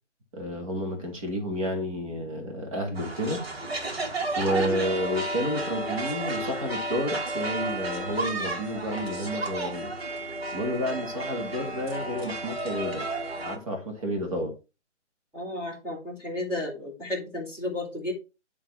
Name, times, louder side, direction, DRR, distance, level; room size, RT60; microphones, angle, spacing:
voice 1, 0.3-3.4 4.4-9.9 10.5-13.1 13.4-14.5, equal, 30° right, 2.0 m, -30 dB
sound 1, 3.0-13.6, right 2 dB, 55° right, 2.2 m, -32 dB
voice 2, 4.5-4.9 15.3-18.1, left 1 dB, 5° right, 1.8 m, -33 dB
9.8 x 3.5 x 4.2 m
figure-of-eight pair, 145°, 36 cm